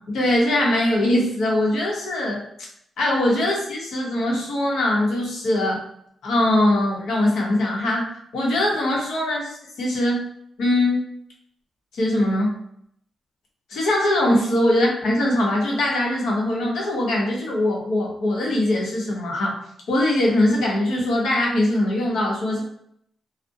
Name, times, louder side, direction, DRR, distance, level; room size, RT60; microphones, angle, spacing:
voice 1, 0.1-2.4 3.0-5.8 6.2-10.2 10.6-11.0 11.9-12.6 13.7-19.6 19.9-22.6, left 1 dB, 90° left, -2 dB, 0.8 m, -21 dB
2.4 x 2.1 x 2.6 m, 0.68 s
wide cardioid pair, 175°, 0 cm